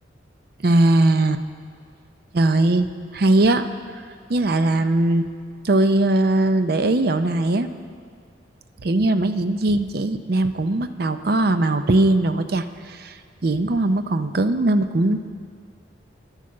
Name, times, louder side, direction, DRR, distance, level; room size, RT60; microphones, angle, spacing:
voice 1, 0.6-1.4 2.3-2.9 3.1-3.6 4.3-5.3 5.6-7.7 8.8-13.1 13.4-15.3, right 2 dB, 55° right, 10 dB, 0.6 m, -20 dB
10.5 x 8.2 x 7.5 m, 2.2 s
head